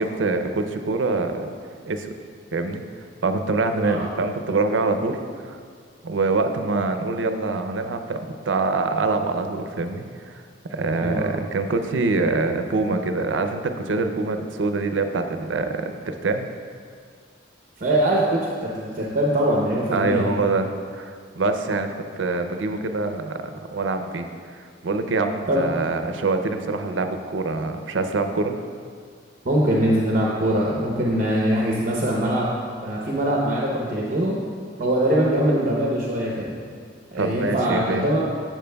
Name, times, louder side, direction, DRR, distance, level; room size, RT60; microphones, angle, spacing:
voice 1, 0.0-1.5 1.9-2.1 2.5-2.8 3.2-5.2 5.4-5.6 6.0-10.4 10.7-16.5 19.9-28.6 37.2-38.0, right 3 dB, 85° right, 7 dB, 0.5 m, -25 dB
voice 2, 11.0-11.4 17.8-20.3 25.5-25.6 29.4-32.5 32.8-34.4 34.8-36.5 37.1-38.2, right 1 dB, 45° right, -3 dB, 0.8 m, -22 dB
12.0 x 7.3 x 2.3 m, 2.1 s
head